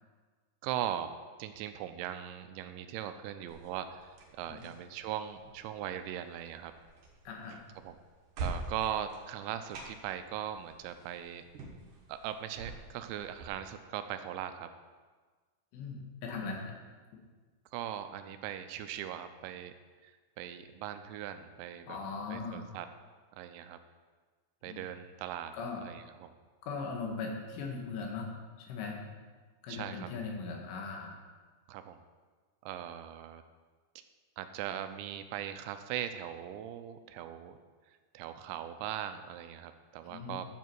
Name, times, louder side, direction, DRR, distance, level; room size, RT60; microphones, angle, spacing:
voice 1, 0.6-1.1 1.4-4.1 4.4-6.7 7.8-8.0 8.4-11.4 12.1-14.7 17.7-19.7 20.0-22.0 22.3-22.9 23.4-23.8 24.6-25.5 25.8-26.3 29.7-30.1 31.7-32.0 32.6-33.4 34.4-37.6 38.1-40.5, right 10 dB, 85° right, 9 dB, 2.8 m, -39 dB
sound 1, 3.5-13.5, right 3 dB, 60° right, 2.2 m, -46 dB
voice 2, 7.3-7.6 15.7-16.8 21.9-22.7 24.6-24.8 25.5-25.8 26.6-28.3 28.7-29.0 29.6-31.2 40.0-40.5, left 4 dB, 90° left, 0 dB, 4.1 m, -39 dB
12.5 x 8.1 x 4.6 m, 1.4 s
omnidirectional pair, 5.4 m